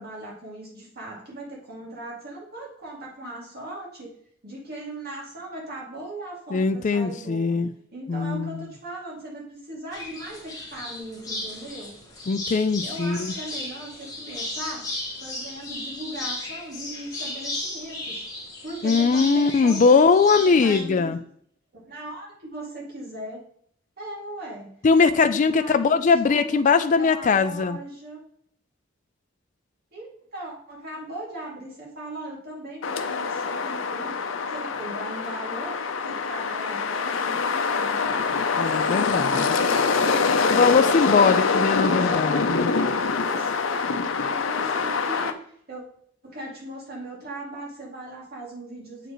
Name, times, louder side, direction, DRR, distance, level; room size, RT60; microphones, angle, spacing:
voice 1, 0.0-4.1 4.4-7.6 7.9-12.0 12.8-14.9 15.2-18.2 18.6-21.1 21.7-23.4 24.0-24.7 25.0-28.2 29.9-34.2 34.5-35.7 36.0-38.2 39.4-41.4 42.0-44.0 44.3-45.3 45.7-45.8 46.2-49.1, right 1 dB, 55° right, -3 dB, 2.5 m, -38 dB
voice 2, 6.5-7.7 8.1-8.6 12.3-13.3 18.8-21.2 24.8-27.8 38.6-39.4 40.5-42.7, left 5 dB, 40° left, 9 dB, 0.4 m, -20 dB
sound 1, 9.9-20.8, left 2 dB, 20° left, 1.5 m, -35 dB
sound 2, 32.8-45.3, left 5 dB, 80° left, 0.6 m, -24 dB
7.8 x 5.1 x 3.1 m, 0.63 s
head